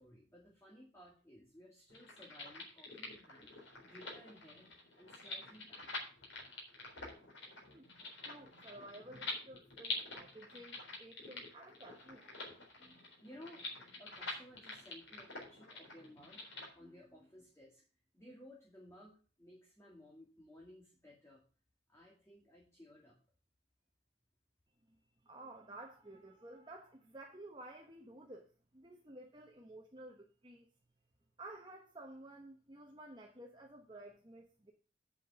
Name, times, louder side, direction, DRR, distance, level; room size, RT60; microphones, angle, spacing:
voice 1, 0.0-5.9 7.0-7.1 12.6-13.7 14.0-16.4 16.7-17.8 18.1-21.4 21.9-23.2, left 1 dB, 15° left, -3 dB, 2.1 m, -58 dB
sound 1, 1.9-16.7, left 3 dB, 85° left, 4.0 m, -47 dB
voice 2, 8.2-12.7 25.2-30.7 31.4-34.7, right 1 dB, 25° right, 1 dB, 1.0 m, -53 dB
8.2 x 5.9 x 6.9 m, 0.37 s
head